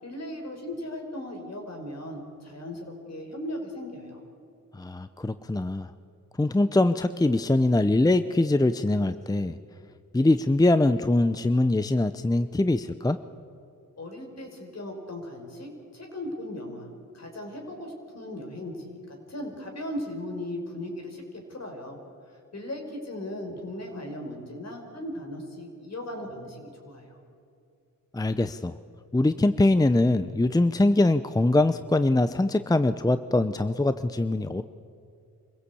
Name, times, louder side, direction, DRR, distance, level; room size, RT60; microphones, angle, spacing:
voice 1, 0.0-4.2 14.0-16.9 17.1-22.0 22.3-27.2, left 1 dB, 55° left, 3 dB, 5.2 m, -37 dB
voice 2, 4.7-5.9 6.4-9.6 10.1-13.2 28.1-28.8 29.1-34.6, left 2 dB, 10° left, 12 dB, 0.6 m, -23 dB
25.0 x 16.0 x 8.5 m, 2.5 s
cardioid pair, 65°, 32 cm